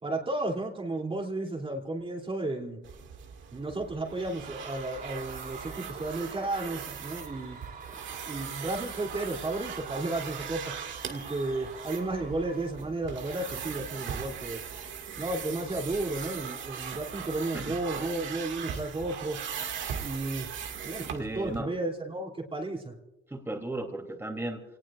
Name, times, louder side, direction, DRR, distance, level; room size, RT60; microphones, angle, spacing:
voice 1, 0.0-2.8 3.5-7.6 8.3-10.7 11.1-14.6 15.2-19.4 20.0-20.5 20.8-22.9, right 2 dB, 30° right, -1 dB, 3.0 m, -33 dB
sound 1, 2.8-21.6, right 7 dB, 75° right, 2.1 m, -39 dB
Screaming / Cheering / Crowd, 4.4-13.0, right 5 dB, 55° right, 3.6 m, -47 dB
voice 2, 21.2-21.7 23.3-24.6, right 2 dB, 10° right, 2 dB, 3.0 m, -35 dB
28.0 x 19.0 x 2.5 m, 1.0 s
cardioid pair, 90°, 20 cm